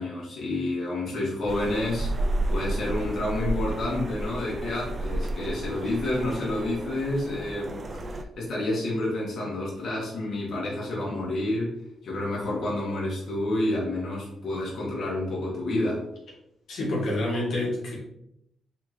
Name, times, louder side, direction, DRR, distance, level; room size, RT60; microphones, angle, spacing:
voice 1, 0.0-2.1 2.5-11.7 12.0-16.0, left 1 dB, 60° left, -5 dB, 1.4 m, -29 dB
sound 1, 1.5-8.2, right 1 dB, 35° right, 0.4 m, -31 dB
voice 2, 16.7-17.9, left 1 dB, 75° left, -4 dB, 1.5 m, -27 dB
3.6 x 3.5 x 3.1 m, 0.77 s
cardioid pair, 90°, 0 cm